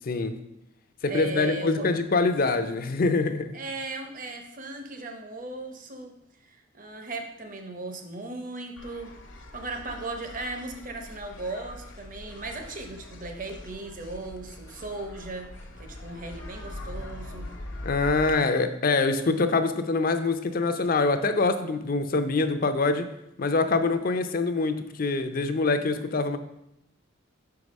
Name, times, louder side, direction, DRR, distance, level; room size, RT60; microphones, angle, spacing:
voice 1, 0.0-0.4 1.0-3.6 17.8-23.1 23.4-26.4, left 3 dB, 45° left, 9 dB, 0.5 m, -25 dB
voice 2, 1.1-1.9 3.5-6.1 6.4-9.1 9.5-15.5 15.8-17.5, right 2 dB, 45° right, 5 dB, 0.9 m, -37 dB
sound 1, 8.8-18.3, left 1 dB, 65° left, 1.0 m, -42 dB
5.8 x 4.8 x 5.2 m, 0.83 s
head